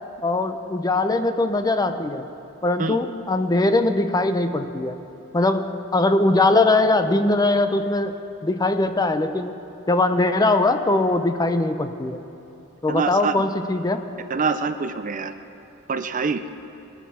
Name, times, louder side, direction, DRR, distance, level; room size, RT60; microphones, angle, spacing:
voice 1, 0.2-2.3 2.6-5.0 5.3-5.7 5.9-8.2 8.4-9.6 9.9-12.2 12.8-14.0, left 2 dB, 15° left, 8 dB, 0.6 m, -21 dB
voice 2, 12.9-13.3 14.3-15.3 15.9-16.4, right 5 dB, 35° right, 10 dB, 0.5 m, -25 dB
21.0 x 13.0 x 4.3 m, 2.9 s
head